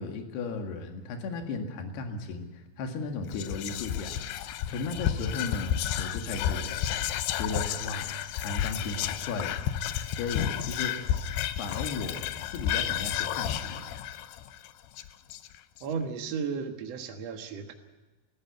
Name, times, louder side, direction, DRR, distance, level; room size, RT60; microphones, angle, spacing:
voice 1, 0.0-2.5 2.8-4.2 4.7-6.8 7.4-9.6 10.1-11.0 11.6-12.2 12.5-13.9, left 3 dB, 60° left, 4 dB, 3.8 m, -35 dB
Whispering, 3.3-15.8, left 10 dB, 80° left, 2.4 m, -31 dB
voice 2, 15.8-17.7, right 6 dB, 80° right, 4 dB, 1.4 m, -34 dB
19.5 x 15.0 x 9.5 m, 1.2 s
omnidirectional pair, 5.6 m